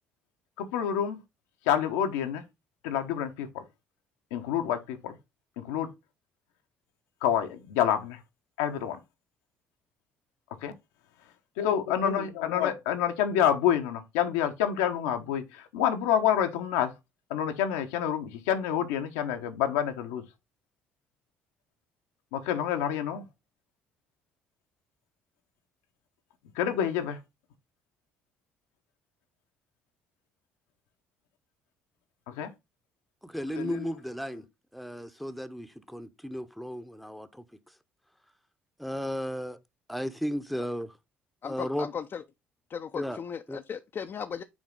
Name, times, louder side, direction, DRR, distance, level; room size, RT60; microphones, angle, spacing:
voice 1, 0.6-1.2 1.7-2.4 2.8-3.6 4.3-5.1 5.6-5.9 7.2-8.2 8.6-9.0 10.6-10.7 11.6-16.9 17.3-20.2 22.3-23.2 26.6-27.2 32.3-32.5 33.5-33.8, left 9 dB, 80° left, 1.0 m, -28 dB
voice 2, 33.2-34.5 34.7-37.4 38.8-39.6 39.9-41.0 41.4-41.9 42.9-43.2 43.5-43.6, equal, ahead, 0.9 m, -34 dB
voice 3, 41.4-42.2 42.7-44.4, left 7 dB, 45° left, 0.6 m, -36 dB
6.2 x 4.1 x 3.8 m
hypercardioid pair, 55°, 6 cm